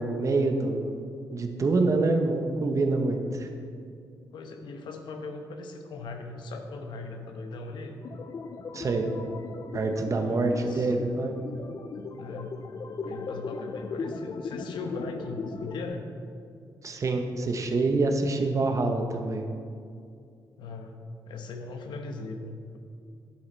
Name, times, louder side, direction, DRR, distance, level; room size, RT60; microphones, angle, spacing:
voice 1, 0.0-3.5 8.7-9.1 9.7-11.4 16.8-19.5, right 3 dB, 45° right, 4 dB, 1.1 m, -26 dB
voice 2, 4.3-8.0 10.0-10.9 12.1-12.5 13.0-16.1 20.6-21.0 21.3-22.8, left 3 dB, 85° left, 5 dB, 1.0 m, -39 dB
sound 1, 8.0-15.9, left 4 dB, 50° left, 0.5 m, -38 dB
11.0 x 7.8 x 4.1 m, 2.3 s
cardioid pair, 90°, 8 cm